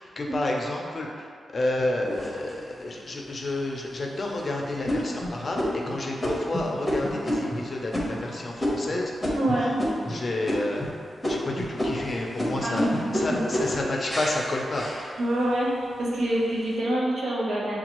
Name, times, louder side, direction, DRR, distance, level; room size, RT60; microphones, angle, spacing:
voice 1, 0.0-9.1 9.5-9.8 10.1-10.9 11.3-14.9, left 2 dB, 30° left, -1 dB, 0.5 m, -30 dB
sound 1, 2.0-2.9 3.5-3.6 4.1-4.4 4.9-10.2 10.4-10.9 11.2-15.5 16.0-16.6, left 1 dB, 5° left, 0.8 m, -29 dB
voice 2, 9.3-9.8 12.6-13.4 15.2-15.7 16.0-17.8, right 1 dB, 65° right, -5 dB, 0.8 m, -26 dB
6.8 x 2.3 x 3.0 m, 2.2 s
wide cardioid pair, 160°, 0 cm